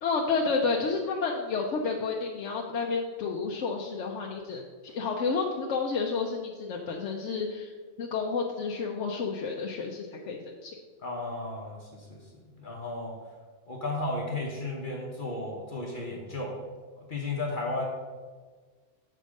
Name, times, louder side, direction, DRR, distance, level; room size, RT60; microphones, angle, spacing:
voice 1, 0.0-7.7 8.0-10.8, left 4 dB, 75° left, 0 dB, 1.0 m, -30 dB
voice 2, 11.0-13.2 13.7-16.6 17.0-17.9, left 2 dB, 45° left, -1 dB, 1.1 m, -34 dB
6.6 x 4.4 x 6.3 m, 1.5 s
omnidirectional pair, 1.3 m